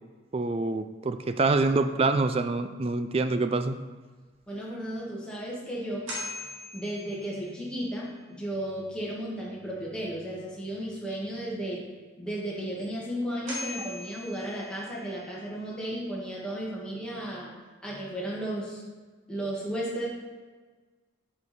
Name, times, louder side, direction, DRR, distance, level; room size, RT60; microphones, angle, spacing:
voice 1, 0.3-3.8, right 3 dB, 30° right, 9 dB, 0.3 m, -26 dB
voice 2, 4.5-6.1 6.7-11.8 12.2-17.5 17.8-18.8 19.3-20.1, right 1 dB, 5° left, -6 dB, 1.7 m, -34 dB
sound 1, 4.6-4.7 5.3-5.4 6.1-7.7 12.8-12.9 13.5-15.1, left 1 dB, 70° right, 2.3 m, -40 dB
8.3 x 5.1 x 4.2 m, 1.3 s
head